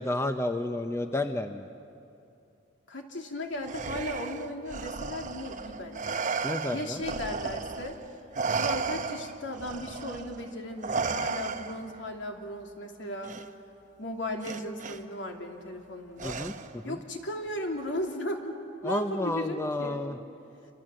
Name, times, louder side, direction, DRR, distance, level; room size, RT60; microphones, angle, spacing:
voice 1, 0.0-1.7 6.4-7.0 16.2-17.0 18.8-20.2, left 1 dB, 15° left, 8 dB, 0.7 m, -31 dB
voice 2, 2.9-6.2 6.7-8.0 8.6-13.3 14.0-16.4 16.8-18.6 18.8-20.0, left 1 dB, 75° left, 2 dB, 2.8 m, -36 dB
Respiratory sounds, 3.6-8.0 8.3-12.0 13.2-13.4 14.4-15.0 16.2-16.8, right 4 dB, 40° right, 0.9 m, -34 dB
28.0 x 26.5 x 7.7 m, 2.6 s
head